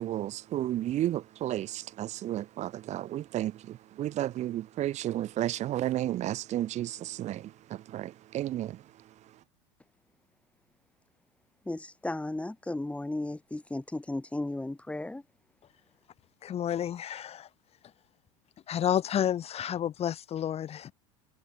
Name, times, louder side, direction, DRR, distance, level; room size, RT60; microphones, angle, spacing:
voice 1, 0.0-9.4, right 13 dB, 45° right, 1.7 m, -33 dB
voice 2, 11.7-15.2, left 2 dB, 5° left, 4.4 m, -35 dB
voice 3, 16.4-17.5 18.7-20.9, left 10 dB, 35° left, 3.9 m, -30 dB
hypercardioid pair, 90°, 17 cm